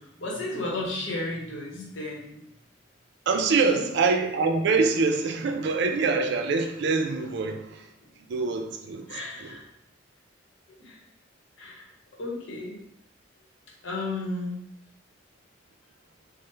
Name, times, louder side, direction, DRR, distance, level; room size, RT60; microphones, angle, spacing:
voice 1, 0.0-2.4 3.6-3.8 9.1-9.6 10.8-11.0 11.6-11.9 12.2-12.8 13.8-14.6, left 2 dB, 75° left, -2 dB, 0.8 m, -33 dB
voice 2, 3.3-7.9 8.2-9.6, right 4 dB, 60° right, 5 dB, 0.4 m, -25 dB
3.2 x 2.0 x 3.1 m, 0.79 s
head